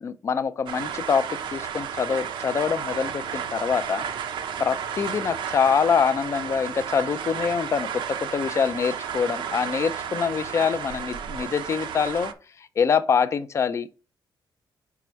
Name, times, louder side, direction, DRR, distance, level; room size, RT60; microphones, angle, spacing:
voice 1, 0.0-4.1 4.6-12.3 12.8-13.9, left 6 dB, 35° left, 0.5 m, -25 dB
sound 1, 0.7-12.3, right 8 dB, 70° right, 0.8 m, -33 dB
5.1 x 4.8 x 5.6 m
cardioid pair, 160°, 8 cm